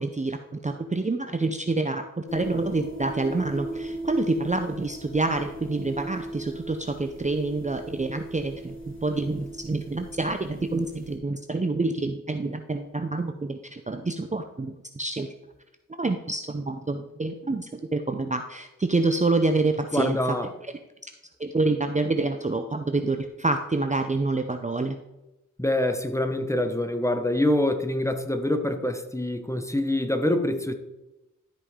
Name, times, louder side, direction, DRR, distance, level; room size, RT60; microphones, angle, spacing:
voice 1, 0.0-15.3 16.0-20.4 21.4-25.0, right 3 dB, 25° right, 6 dB, 0.6 m, -27 dB
sound 1, 2.3-11.2, right 1 dB, 40° left, 1.9 m, -39 dB
voice 2, 19.9-20.5 25.6-30.7, left 1 dB, 10° left, 7 dB, 1.0 m, -25 dB
12.5 x 5.2 x 3.7 m, 0.96 s
cardioid pair, 55°, 32 cm